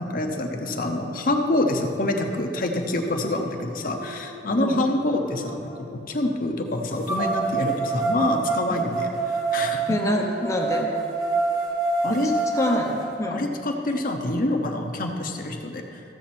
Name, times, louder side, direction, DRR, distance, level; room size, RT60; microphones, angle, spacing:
voice 1, 0.0-9.8 12.0-12.3 13.3-15.8, left 1 dB, 50° left, 3 dB, 0.9 m, -26 dB
sound 1, 3.2-3.3 3.9-5.8 7.0-13.1, right 3 dB, 20° right, 1.8 m, -27 dB
voice 2, 9.9-10.9 12.1-13.5, left 1 dB, 20° left, 0 dB, 0.8 m, -26 dB
14.5 x 7.2 x 4.4 m, 2.6 s
head